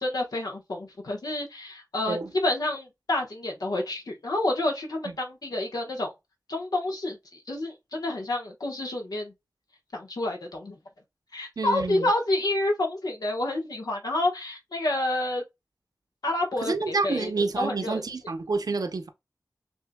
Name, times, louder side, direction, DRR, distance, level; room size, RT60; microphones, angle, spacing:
voice 1, 0.0-6.1 6.5-7.2 7.5-9.3 9.9-10.7 11.3-15.4 16.2-17.3 17.6-18.0, left 2 dB, 80° left, 1.1 m, -29 dB
voice 2, 11.6-12.1 16.6-19.1, right 4 dB, 80° right, 0.7 m, -28 dB
6.3 x 2.7 x 2.2 m
cardioid pair, 40°, 6 cm